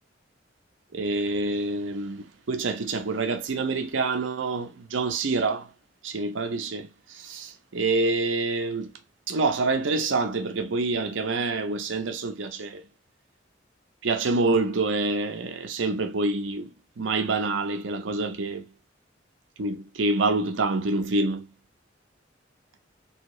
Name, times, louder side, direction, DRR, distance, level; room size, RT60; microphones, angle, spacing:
voice 1, 0.9-5.7 6.0-8.9 9.3-12.8 14.0-18.7 19.6-21.5, right 3 dB, 80° right, 0.6 m, -27 dB
3.5 x 2.7 x 3.0 m
head